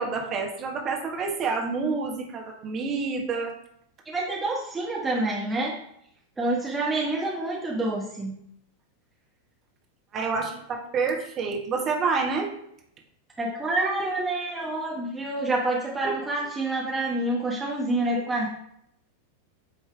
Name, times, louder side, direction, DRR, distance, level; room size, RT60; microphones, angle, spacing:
voice 1, 0.0-3.5 10.1-12.5 16.0-16.1 18.1-18.2, right 4 dB, 30° right, 0 dB, 1.3 m, -28 dB
voice 2, 4.1-5.8 6.4-8.3 13.4-18.5, right 2 dB, 10° right, -3 dB, 1.1 m, -27 dB
8.8 x 3.2 x 3.3 m, 0.72 s
figure-of-eight pair, 90°, 0 cm